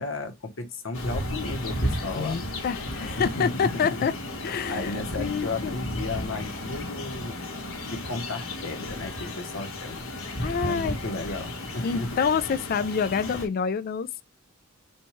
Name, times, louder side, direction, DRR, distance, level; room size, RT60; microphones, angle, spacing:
voice 1, 0.0-2.4 3.2-7.4 7.8-10.0 10.6-12.2, left 2 dB, 70° left, 0.9 m, -34 dB
sound 1, 0.9-13.5, left 1 dB, 85° left, 1.2 m, -34 dB
voice 2, 2.2-4.1 4.4-5.7 10.4-11.0 11.8-14.2, left 6 dB, 45° left, 0.3 m, -27 dB
4.3 x 2.3 x 3.0 m
head